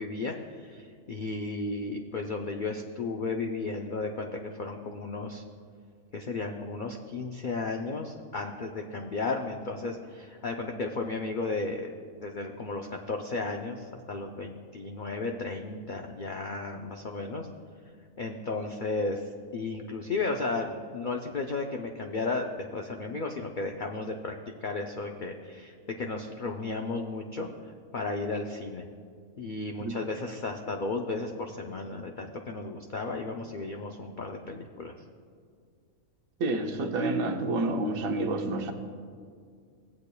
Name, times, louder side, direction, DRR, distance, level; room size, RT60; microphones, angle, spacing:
voice 1, 0.0-5.4 6.1-11.9 12.2-17.5 18.2-19.2 19.5-24.3 24.6-27.5 27.9-28.9 29.4-34.9, left 3 dB, 70° left, 2 dB, 0.4 m, -34 dB
voice 2, 36.4-38.7, right 2 dB, 70° right, 5 dB, 1.2 m, -28 dB
17.0 x 8.4 x 2.2 m, 2.1 s
omnidirectional pair, 1.5 m